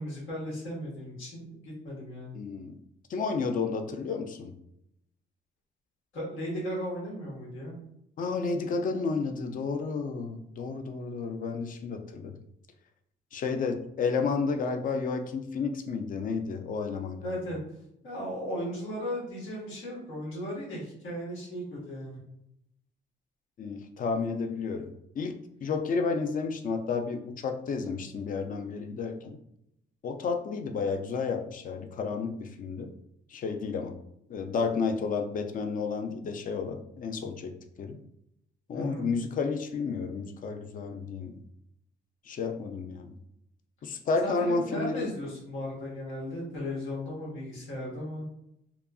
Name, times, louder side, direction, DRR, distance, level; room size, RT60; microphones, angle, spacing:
voice 1, 0.0-2.4 6.1-7.7 17.2-17.6 18.0-22.2 38.7-39.1 44.2-48.2, equal, 80° left, -5 dB, 1.3 m, -36 dB
voice 2, 2.3-2.8 3.1-4.5 8.2-12.4 13.3-17.4 23.6-24.9 25.2-25.3 25.6-29.4 30.0-32.9 33.3-33.9 34.3-38.0 38.7-41.4 42.3-43.1 43.8-45.1, left 4 dB, 45° left, 6 dB, 0.4 m, -31 dB
2.8 x 2.4 x 2.3 m, 0.77 s
cardioid pair, 90°, 20 cm